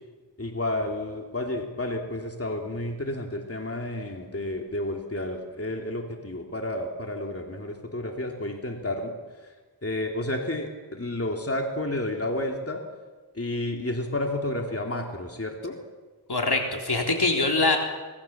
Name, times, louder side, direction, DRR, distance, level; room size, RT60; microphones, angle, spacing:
voice 1, 0.4-9.1 9.4-9.5 9.8-12.8 13.3-15.7, left 1 dB, 35° left, 2 dB, 2.9 m, -31 dB
voice 2, 16.3-17.8, left 3 dB, 65° left, 1 dB, 3.9 m, -23 dB
25.5 x 19.5 x 7.3 m, 1.3 s
wide cardioid pair, 60°, 42 cm